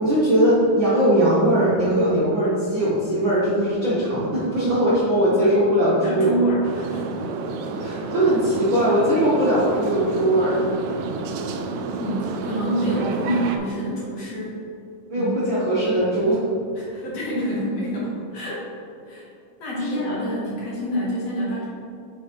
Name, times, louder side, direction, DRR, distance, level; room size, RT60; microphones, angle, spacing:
voice 1, 0.0-6.4 7.8-10.5 15.1-16.4 19.8-20.0, right 1 dB, 55° right, -9 dB, 1.4 m, -20 dB
voice 2, 6.0-7.1 12.0-14.6 15.2-15.3 16.8-18.7 19.1-19.3 19.6-21.7, right 1 dB, 60° left, -6 dB, 2.1 m, -27 dB
sound 1, 6.6-13.6, right 3 dB, 90° right, 1.6 m, -30 dB
8.0 x 5.9 x 3.1 m, 2.8 s
omnidirectional pair, 3.7 m